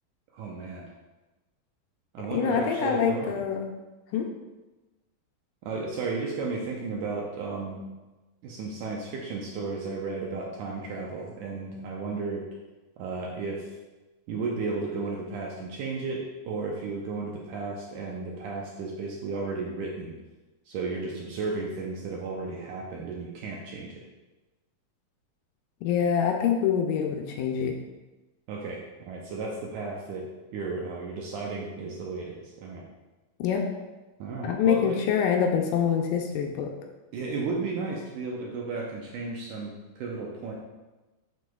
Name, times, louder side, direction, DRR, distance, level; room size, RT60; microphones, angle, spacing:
voice 1, 0.3-0.8 2.1-3.3 5.6-7.8 8.4-12.4 13.0-13.7 14.3-20.1 20.7-24.0 28.5-28.8 29.1-30.3 30.5-32.9 34.2-35.0 37.1-40.5, right 4 dB, 75° right, -2 dB, 1.9 m, -34 dB
voice 2, 2.3-3.7 4.1-4.3 25.8-27.8 33.4-33.6 34.4-36.7, left 7 dB, 80° left, 3 dB, 2.1 m, -25 dB
7.2 x 6.1 x 2.3 m, 1.1 s
omnidirectional pair, 4.1 m